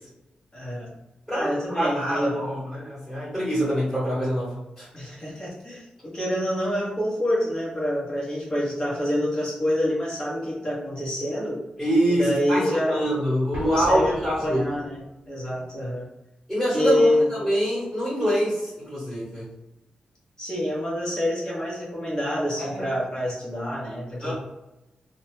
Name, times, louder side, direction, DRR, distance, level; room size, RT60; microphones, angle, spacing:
voice 1, 0.5-0.9 1.3-2.5 4.9-11.6 12.1-13.1 13.6-15.0 15.3-16.1 16.7-17.3 20.4-24.3, left 1 dB, 30° left, -5 dB, 1.1 m, -26 dB
voice 2, 1.3-4.9 11.8-14.6 16.5-19.5 22.6-22.8 24.2-24.3, equal, 10° left, -12 dB, 1.4 m, -25 dB
Explosion, 13.5-15.1, right 1 dB, 40° right, 0.6 m, -38 dB
2.6 x 2.1 x 3.1 m, 0.96 s
wide cardioid pair, 140°, 3 cm